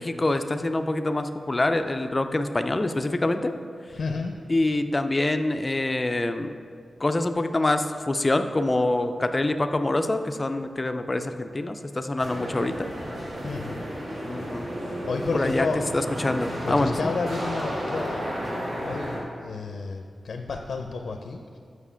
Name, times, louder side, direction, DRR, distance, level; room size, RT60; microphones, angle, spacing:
voice 1, 0.0-3.5 4.5-6.5 7.0-12.9 14.3-14.7 15.3-15.7 15.9-17.1, left 2 dB, 25° left, 8 dB, 0.4 m, -25 dB
voice 2, 3.9-4.3 13.4-13.8 15.1-16.4 16.6-21.6, left 4 dB, 80° left, 4 dB, 0.5 m, -32 dB
sound 1, 12.2-19.2, equal, 55° right, 2.0 m, -32 dB
7.2 x 6.2 x 5.6 m, 2.2 s
wide cardioid pair, 155°, 0 cm